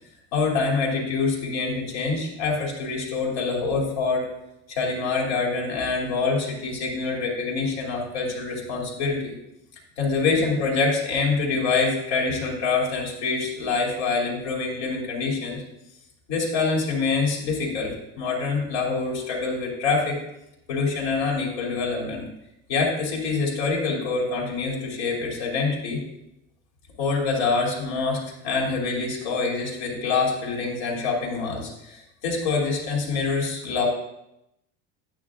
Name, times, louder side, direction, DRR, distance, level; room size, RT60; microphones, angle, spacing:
voice 1, 0.3-4.3 4.7-9.3 10.0-15.6 16.3-20.2 20.7-22.2 22.7-26.0 27.0-33.9, left 4 dB, 85° left, -1 dB, 2.8 m, -25 dB
9.3 x 9.1 x 2.4 m, 0.85 s
cardioid pair, 180°, 33 cm